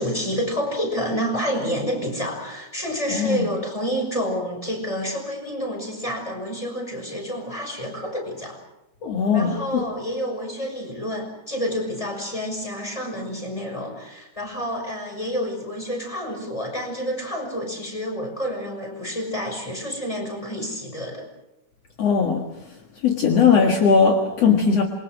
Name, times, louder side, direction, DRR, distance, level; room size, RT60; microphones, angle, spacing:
voice 1, 0.0-8.6 9.3-21.3, equal, 10° left, 2 dB, 6.0 m, -29 dB
voice 2, 3.1-3.5 9.0-9.8 22.0-22.5 23.0-24.8, left 6 dB, 60° left, 2 dB, 2.8 m, -19 dB
27.0 x 23.0 x 6.3 m, 0.89 s
omnidirectional pair, 3.4 m